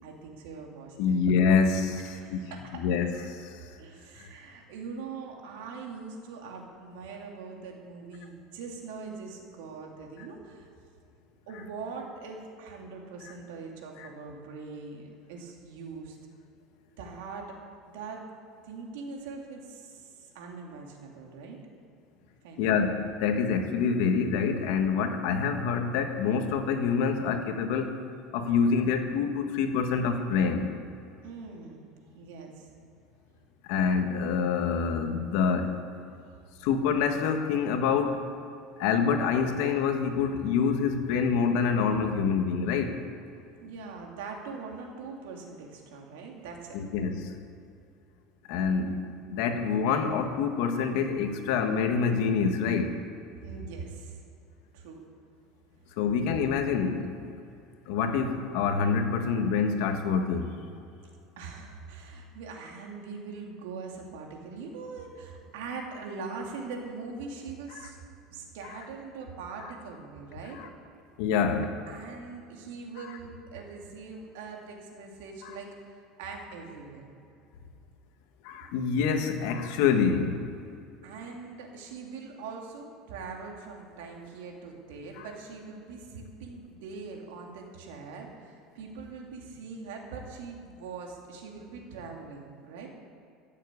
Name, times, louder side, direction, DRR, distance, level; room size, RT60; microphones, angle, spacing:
voice 1, 0.0-1.2 2.1-2.8 3.8-10.7 11.5-16.2 17.0-17.6 17.9-18.2 18.6-21.6 22.4-22.8 31.2-31.9 32.1-32.7 43.6-46.8 53.4-54.2 54.7-55.0 61.4-68.0 68.3-70.6 71.8-75.7 76.2-77.1 81.0-92.9, right 4 dB, 85° right, 0 dB, 2.8 m, -42 dB
voice 2, 1.0-2.4 2.7-3.7 4.2-4.3 14.0-14.1 22.6-28.0 28.3-30.7 33.6-35.8 36.6-38.2 38.8-43.0 46.7-47.4 48.5-53.0 56.0-57.3 57.9-60.5 68.7-68.8 70.5-70.7 71.2-71.8 75.4-75.5 78.4-80.5 85.2-85.3, left 6 dB, 70° left, 6 dB, 1.5 m, -26 dB
14.0 x 7.5 x 8.4 m, 2.5 s
cardioid pair, 150°, 0 cm